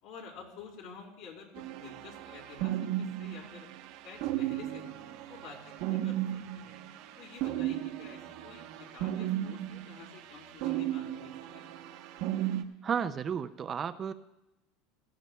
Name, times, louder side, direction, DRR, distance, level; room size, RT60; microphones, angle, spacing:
voice 1, 0.0-3.7 4.0-5.0 5.3-6.3 6.5-6.8 7.2-11.7, left 6 dB, 65° left, -2 dB, 3.9 m, -50 dB
sound 1, 1.5-12.6, right 13 dB, 60° right, 0.9 m, -35 dB
voice 2, 12.8-14.1, right 7 dB, 25° right, 11 dB, 0.4 m, -32 dB
17.5 x 15.5 x 2.2 m, 0.95 s
supercardioid pair, 150°, 0 cm